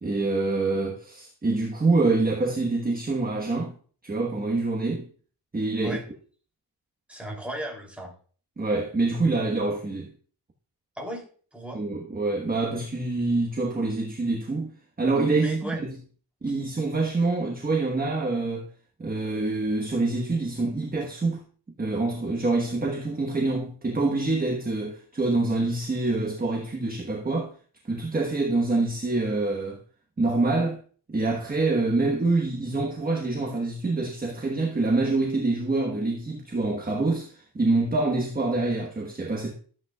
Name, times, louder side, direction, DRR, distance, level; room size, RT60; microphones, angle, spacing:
voice 1, 0.0-3.8 4.0-5.1 5.5-6.0 8.6-10.1 11.7-14.7 15.0-15.9 16.4-18.7 19.0-21.4 21.8-27.5 27.8-29.8 30.2-30.8 31.1-39.5, right 3 dB, 20° right, 1.2 m, -26 dB
voice 2, 7.1-8.1 10.9-11.2 11.5-11.8 15.4-15.8 16.5-16.6, right 1 dB, 5° right, 2.9 m, -35 dB
13.0 x 9.0 x 2.3 m
wide cardioid pair, 170°, 43 cm